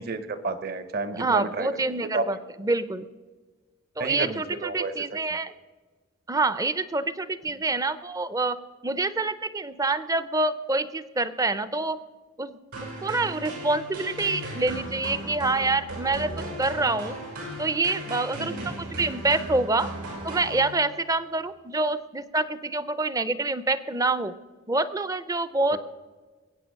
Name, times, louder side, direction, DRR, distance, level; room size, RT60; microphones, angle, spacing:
voice 1, 0.0-2.2 4.0-4.9 18.4-18.7 25.7-25.8, right 3 dB, 45° right, 12 dB, 0.9 m, -31 dB
voice 2, 1.1-3.1 4.0-5.5 6.3-8.6 8.8-12.0 12.4-12.6 13.0-16.3 16.6-17.1 17.6-19.9 20.2-24.3 24.7-25.8, right 3 dB, 15° right, 14 dB, 0.5 m, -26 dB
sound 1, 12.7-21.1, right 1 dB, 85° right, 5.8 m, -36 dB
22.0 x 8.6 x 6.4 m, 1.3 s
head